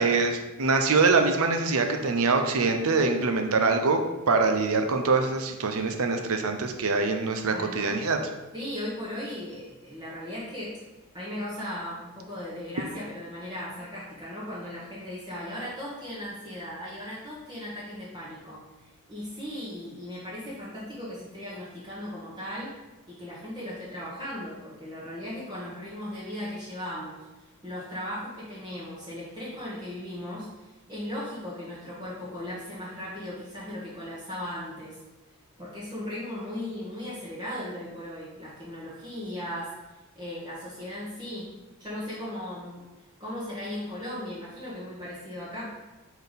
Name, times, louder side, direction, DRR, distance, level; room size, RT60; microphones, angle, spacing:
voice 1, 0.0-4.0 4.3-8.2, right 4 dB, 70° right, 5 dB, 0.7 m, -24 dB
voice 2, 7.5-8.0 8.5-10.7 11.1-18.6 19.1-22.7 23.1-27.2 27.6-35.0 35.6-39.7 40.1-41.5 41.8-42.8 43.2-45.7, left 1 dB, 20° right, -8 dB, 1.3 m, -37 dB
4.4 x 4.1 x 5.2 m, 1.1 s
head